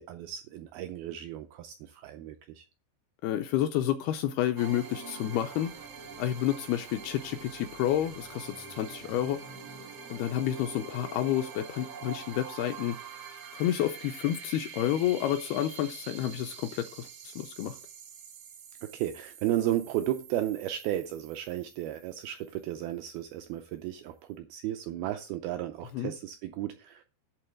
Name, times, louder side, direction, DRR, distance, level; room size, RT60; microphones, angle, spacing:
voice 1, 0.0-2.7 18.8-27.0, right 12 dB, 85° right, 2.1 m, -34 dB
voice 2, 3.2-5.9 6.2-9.5 10.1-13.0 13.5-17.8 25.9-26.1, left 11 dB, 85° left, 2.3 m, -30 dB
sound 1, 4.6-23.0, right 6 dB, 70° right, 1.4 m, -46 dB
11.0 x 3.8 x 7.5 m
omnidirectional pair, 5.1 m